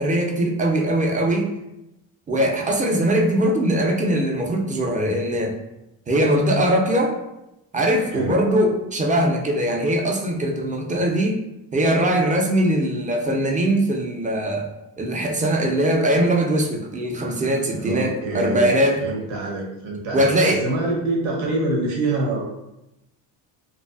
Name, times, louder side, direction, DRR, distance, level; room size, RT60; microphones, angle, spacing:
voice 1, 0.0-1.5 2.3-5.6 6.1-7.2 7.7-11.4 11.7-14.7 15.0-19.0 20.1-20.6, right 1 dB, 15° right, 1 dB, 0.4 m, -21 dB
voice 2, 17.7-22.5, right 2 dB, 75° right, -2 dB, 0.8 m, -26 dB
2.5 x 2.2 x 2.3 m, 0.91 s
supercardioid pair, 70°, 48 cm